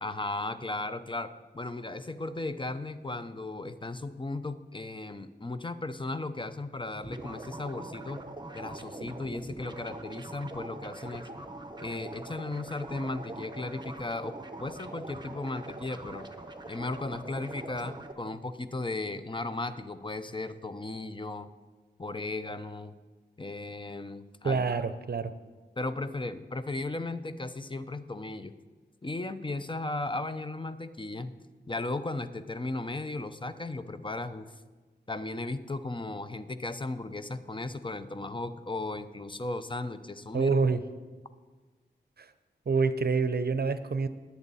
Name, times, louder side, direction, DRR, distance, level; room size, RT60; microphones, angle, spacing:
voice 1, 0.0-8.2 8.5-11.3 11.8-16.3 16.7-21.5 22.0-22.9 23.4-24.6 25.8-28.5 29.0-31.3 31.7-34.6 35.1-40.6, left 2 dB, 25° left, 11 dB, 0.7 m, -36 dB
sound 1, 7.0-18.1, right 2 dB, 25° right, 1.1 m, -43 dB
voice 2, 24.4-25.3 40.3-40.8 42.2-42.3 42.7-44.1, right 4 dB, 55° right, 12 dB, 0.7 m, -27 dB
21.5 x 8.2 x 4.2 m, 1.3 s
wide cardioid pair, 65°, 19 cm